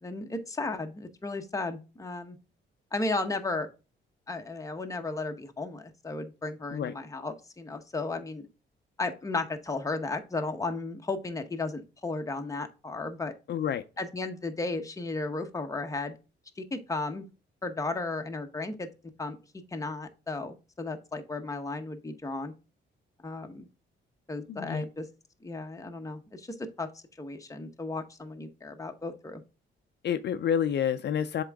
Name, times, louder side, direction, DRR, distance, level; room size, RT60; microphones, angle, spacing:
voice 1, 0.0-2.4 2.9-3.7 4.3-8.5 9.0-13.3 14.0-16.2 16.6-17.2 17.6-18.9 19.2-19.4 19.7-22.5 23.2-23.7 24.3-25.1 25.4-29.4, left 3 dB, 15° left, 0.9 m, -34 dB
voice 2, 13.5-13.8 24.5-24.8 30.0-31.4, left 8 dB, 60° left, 0.5 m, -29 dB
7.5 x 3.7 x 3.5 m
cardioid pair, 120°, 20 cm